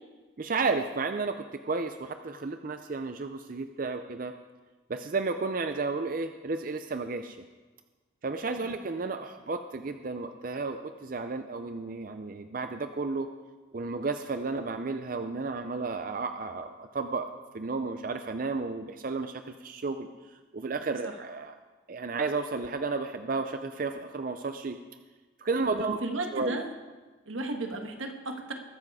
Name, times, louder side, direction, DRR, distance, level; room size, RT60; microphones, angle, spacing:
voice 1, 0.4-4.3 4.9-7.4 8.2-13.3 13.7-20.1 20.5-21.6 21.9-24.8 25.4-26.0 26.3-26.6, right 3 dB, 45° right, 8 dB, 0.5 m, -32 dB
voice 2, 25.8-26.7 27.3-28.5, right 2 dB, 85° right, 4 dB, 1.5 m, -34 dB
21.0 x 7.3 x 4.8 m, 1.3 s
head